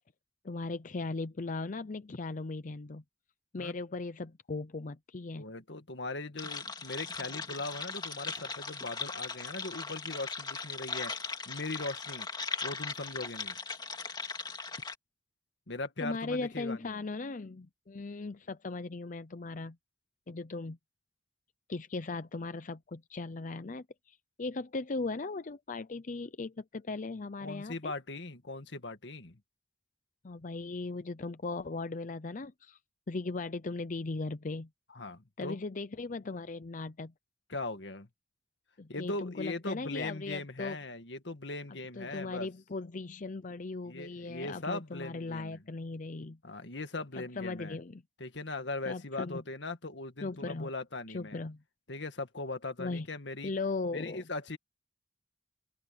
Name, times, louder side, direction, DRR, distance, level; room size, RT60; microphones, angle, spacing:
voice 1, 0.4-3.0 3.5-5.4 16.0-19.8 20.3-20.8 21.7-27.9 30.2-32.8 33.1-34.7 35.4-37.1 38.8-40.8 42.0-46.4 47.1-48.0 48.9-49.4 50.2-50.7 51.1-51.6 52.8-53.1 53.4-54.2, left 3 dB, 45° left, 0.6 m, -38 dB
voice 2, 5.4-11.1 11.5-12.3 12.6-13.6 15.7-17.0 27.4-29.4 34.9-35.6 37.5-38.1 38.9-42.5 43.9-45.6 46.4-47.8 48.2-51.4 51.9-53.5 53.9-54.6, left 2 dB, 85° left, 1.9 m, -39 dB
sound 1, 6.4-14.9, left 4 dB, 25° left, 2.3 m, -39 dB
open air
head